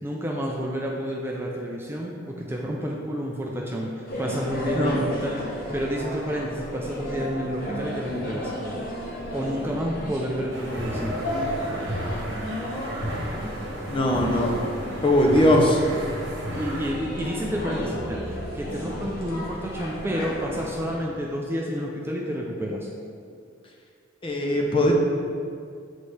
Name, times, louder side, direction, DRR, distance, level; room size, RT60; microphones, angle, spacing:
voice 1, 0.0-8.5 9.3-11.2 16.5-22.9, equal, 10° right, -2 dB, 0.4 m, -30 dB
sound 1, 4.1-21.0, left 1 dB, 45° left, 1.2 m, -33 dB
sound 2, 10.5-16.9, right 1 dB, 60° right, 1.2 m, -33 dB
voice 2, 13.9-14.6 15.0-15.8 24.2-24.9, left 1 dB, 25° left, 0 dB, 0.7 m, -20 dB
8.1 x 4.1 x 3.3 m, 2.3 s
head